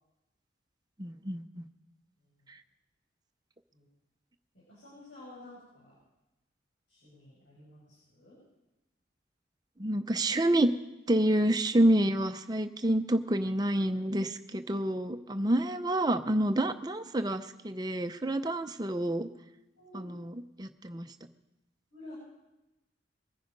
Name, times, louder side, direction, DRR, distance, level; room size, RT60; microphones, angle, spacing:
voice 1, 1.0-1.7 9.8-10.7 11.1-19.3 19.9-20.3 20.6-21.1, right 1 dB, 20° right, 8 dB, 0.7 m, -28 dB
voice 2, 4.5-6.0 6.9-8.4 19.8-20.1 21.9-22.1, left 1 dB, 85° left, -7 dB, 6.2 m, -51 dB
22.0 x 9.9 x 5.3 m, 0.97 s
head